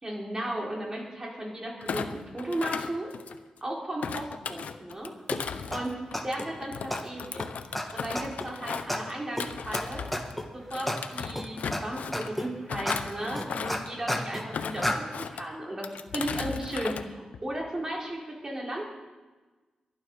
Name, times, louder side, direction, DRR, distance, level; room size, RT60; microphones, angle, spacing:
voice 1, 0.0-3.1 3.6-5.1 5.7-5.9 6.2-7.5 7.9-10.1 10.5-15.9 16.1-18.9, right 1 dB, 25° right, -2 dB, 4.3 m, -35 dB
Thump thud, 1.8-3.6 4.0-10.4 10.7-12.3 12.7-13.9 14.4-15.4 15.8-17.0 17.3-17.7, left 6 dB, 85° left, 0.9 m, -36 dB
sound 1, 5.3-5.4 5.7-5.8 6.1-6.5 6.9-7.0 7.4-7.5 7.7-7.8 8.2-8.5 8.9-9.0 9.4-9.5 9.7-9.8 10.1-10.4 10.9-11.0 11.4-11.8 12.1-12.5 12.9-13.0 13.4-14.5 14.8-15.0, left 1 dB, 5° left, 1.7 m, -30 dB
23.0 x 9.8 x 5.6 m, 1.2 s
wide cardioid pair, 110°, 2 cm